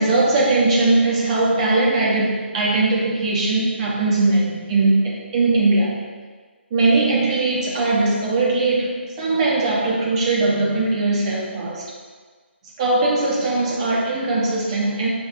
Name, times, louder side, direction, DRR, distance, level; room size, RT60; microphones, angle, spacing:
voice 1, 0.0-6.0 6.7-11.8 12.8-15.1, right 2 dB, 25° right, -5 dB, 0.8 m, -20 dB
5.7 x 2.7 x 2.7 m, 1.5 s
figure-of-eight pair, 140°, 7 cm